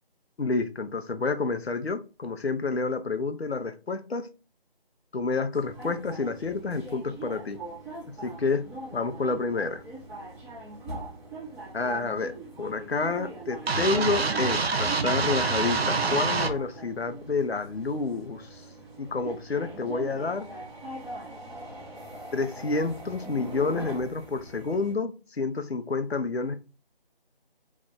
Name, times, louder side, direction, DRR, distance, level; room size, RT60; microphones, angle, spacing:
voice 1, 0.4-4.3 5.1-7.6 8.2-8.6 8.9-9.8 11.7-18.6 19.0-20.5 22.3-26.6, left 4 dB, 85° left, 9 dB, 0.7 m, -29 dB
sound 1, 5.5-24.9, right 2 dB, ahead, 1.0 m, -42 dB
sound 2, 13.7-16.5, right 4 dB, 80° right, 0.6 m, -26 dB
3.1 x 2.5 x 3.6 m, 0.31 s
figure-of-eight pair, 170°, 30 cm